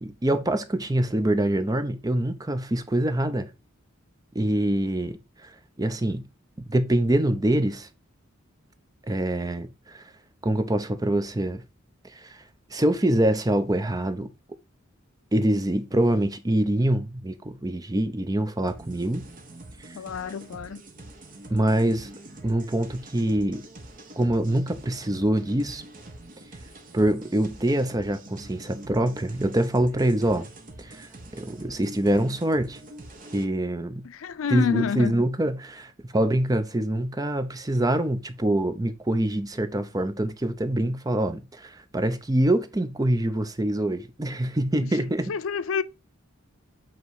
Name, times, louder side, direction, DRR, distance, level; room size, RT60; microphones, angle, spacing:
voice 1, 0.0-3.5 4.3-5.5 5.8-6.2 6.7-7.9 9.1-10.0 10.4-11.6 12.1-12.4 12.7-14.3 15.3-19.3 21.5-22.1 22.4-23.7 24.2-25.8 26.9-30.5 30.8-32.8 33.3-34.0 34.5-45.3, right 1 dB, 20° right, 0.6 m, -25 dB
sound 1, 18.7-33.4, right 1 dB, 40° right, 1.1 m, -45 dB
voice 2, 20.0-20.8 34.2-35.1 45.3-45.8, left 5 dB, 80° left, 0.5 m, -27 dB
8.1 x 3.0 x 4.7 m
head